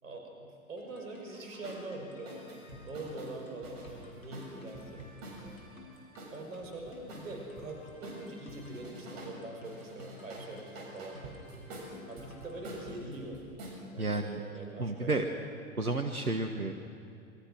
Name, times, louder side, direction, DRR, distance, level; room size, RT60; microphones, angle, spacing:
voice 1, 0.0-5.0 6.3-11.4 12.1-13.4 13.9-15.2, right 2 dB, 70° right, 2 dB, 5.6 m, -43 dB
sound 1, 0.8-13.1, left 1 dB, 70° left, 7.0 m, -54 dB
sound 2, 1.6-1.8 2.3-5.6 6.2-7.7 8.0-9.4 9.6-13.8, right 1 dB, 45° right, 7.3 m, -47 dB
voice 2, 14.0-14.4 14.8-15.2 15.8-16.7, right 2 dB, 85° right, 5 dB, 1.5 m, -31 dB
28.0 x 23.5 x 6.3 m, 2.5 s
figure-of-eight pair, 95°, 43 cm